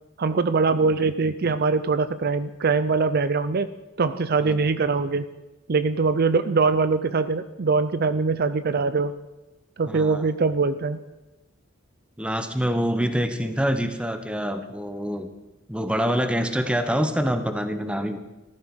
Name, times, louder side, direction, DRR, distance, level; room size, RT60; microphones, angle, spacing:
voice 1, 0.2-3.7 4.0-5.2 5.7-9.1 9.8-11.0, right 4 dB, 50° right, 13 dB, 0.5 m, -22 dB
voice 2, 4.4-4.7 9.8-10.3 12.2-15.3 15.7-18.2, equal, 5° right, 8 dB, 1.1 m, -26 dB
14.5 x 13.0 x 6.3 m, 1.0 s
head